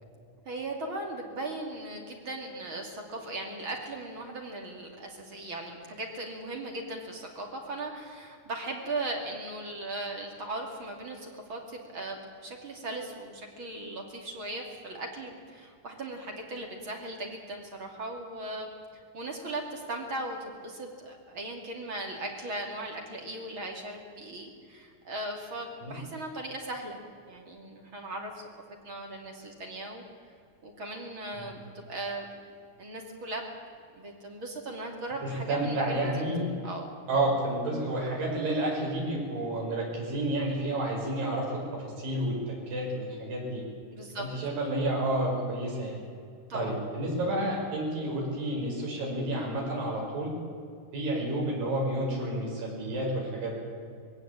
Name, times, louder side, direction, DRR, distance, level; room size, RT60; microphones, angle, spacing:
voice 1, 0.4-18.7 19.1-27.0 27.3-28.4 28.8-30.0 30.6-32.3 32.8-33.4 33.9-36.1 36.6-36.8 43.9-44.3 46.5-46.7, right 2 dB, 35° right, 2 dB, 3.0 m, -38 dB
voice 2, 35.5-36.5 37.1-42.3 42.7-43.6 44.2-46.0 46.5-50.3 50.9-53.5, right 1 dB, 60° right, -2 dB, 7.5 m, -30 dB
20.5 x 17.0 x 8.9 m, 2.2 s
omnidirectional pair, 4.5 m